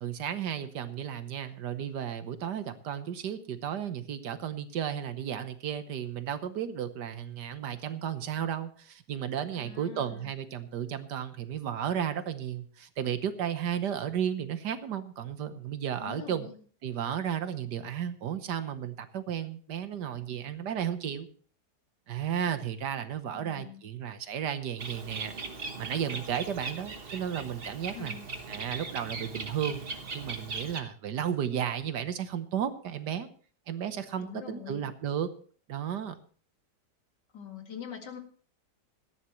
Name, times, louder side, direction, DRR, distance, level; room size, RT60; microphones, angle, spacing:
voice 1, 0.0-16.5 16.8-21.3 22.1-25.3 25.8-28.1 28.5-29.8 30.1-33.3 33.7-35.3 35.7-36.2, right 9 dB, 80° right, 11 dB, 1.7 m, -33 dB
voice 2, 9.5-10.3 16.0-16.5 23.3-23.8 27.9-28.2 34.2-34.8 37.3-38.2, left 8 dB, 90° left, 4 dB, 2.7 m, -44 dB
Bird, 24.8-30.8, right 4 dB, 35° right, 1.3 m, -39 dB
17.5 x 13.5 x 3.1 m, 0.43 s
omnidirectional pair, 1.8 m